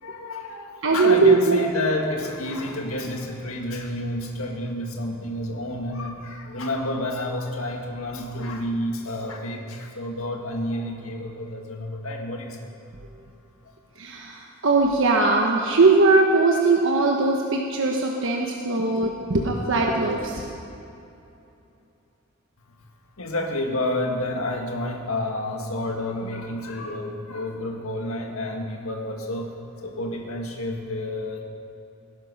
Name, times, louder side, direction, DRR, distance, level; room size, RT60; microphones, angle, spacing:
voice 1, 0.0-12.7 23.2-29.5 29.8-31.4, left 1 dB, 85° left, 2 dB, 1.8 m, -30 dB
voice 2, 0.8-1.6 14.0-20.4, right 3 dB, 65° right, 0 dB, 1.2 m, -20 dB
18.0 x 11.0 x 5.5 m, 2.8 s
head